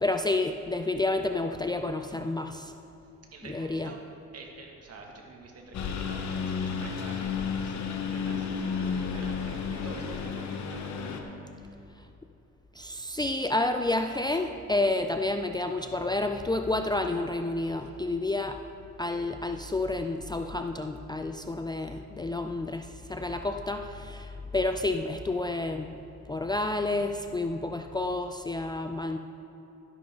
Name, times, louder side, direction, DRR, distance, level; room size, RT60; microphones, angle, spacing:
voice 1, 0.0-2.7 3.5-3.9 12.8-18.6 19.0-26.0 26.3-29.2, left 2 dB, 15° left, 6 dB, 0.4 m, -30 dB
voice 2, 3.3-4.0 4.3-11.7 17.8-18.2 23.0-23.3, right 3 dB, 55° right, 0 dB, 2.2 m, -48 dB
Engine, 5.7-11.2, left 6 dB, 65° left, 1.1 m, -32 dB
12.5 x 10.5 x 3.8 m, 2.9 s
cardioid pair, 90°, 30 cm